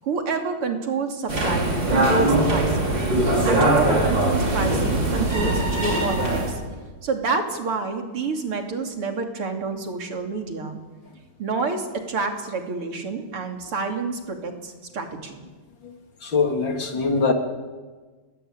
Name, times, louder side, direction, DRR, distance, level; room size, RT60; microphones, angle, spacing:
voice 1, 0.0-3.0 3.4-6.6 7.0-10.8 11.4-15.4, right 4 dB, 85° right, 3 dB, 3.8 m, -28 dB
sound 1, 1.3-6.5, right 1 dB, 55° right, 5.7 m, -21 dB
voice 2, 16.2-17.3, left 4 dB, 60° left, 4 dB, 3.3 m, -22 dB
29.0 x 21.0 x 9.0 m, 1.4 s
omnidirectional pair, 2.4 m